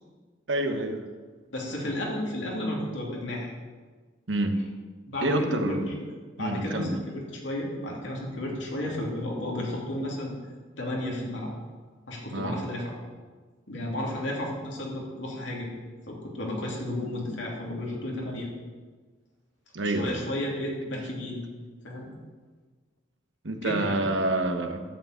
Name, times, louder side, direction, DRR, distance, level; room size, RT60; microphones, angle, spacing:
voice 1, 0.5-1.0 4.3-4.6 5.2-5.9 6.4-6.9 12.3-12.6 19.7-20.2 23.4-24.8, right 1 dB, 85° right, 6 dB, 1.1 m, -27 dB
voice 2, 1.5-3.5 5.1-10.3 10.8-11.5 12.1-12.9 13.7-15.7 16.1-18.5 19.8-21.4 21.8-22.1 23.6-24.1, left 1 dB, 85° left, -3 dB, 2.7 m, -33 dB
10.5 x 5.0 x 8.1 m, 1.4 s
head